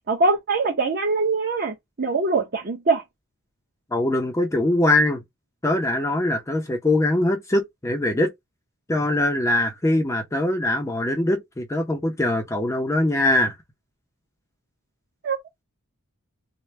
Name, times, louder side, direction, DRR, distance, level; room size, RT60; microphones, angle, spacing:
voice 1, 0.1-3.0 15.2-15.4, right 3 dB, 45° right, 0.9 m, -23 dB
voice 2, 3.9-5.2 5.6-8.3 8.9-13.5, left 1 dB, 15° left, 0.5 m, -22 dB
3.2 x 2.1 x 4.1 m
head